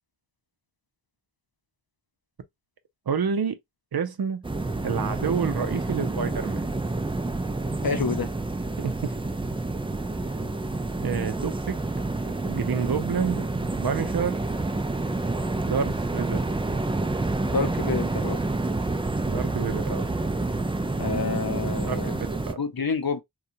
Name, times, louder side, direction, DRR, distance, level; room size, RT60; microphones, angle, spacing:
voice 1, 3.1-3.6 3.9-4.4 4.8-6.7 8.8-9.2 9.9-10.0 11.0-11.8 12.4-14.4 15.7-16.5 19.2-20.1 21.9-22.6, right 6 dB, 65° right, 0.5 m, -29 dB
sound 1, 4.4-22.5, right 2 dB, 15° right, 0.3 m, -28 dB
voice 2, 7.8-8.3 17.4-18.4 21.0-22.2 22.6-23.2, left 4 dB, 60° left, 0.7 m, -28 dB
2.7 x 2.3 x 2.5 m
wide cardioid pair, 45°, 40 cm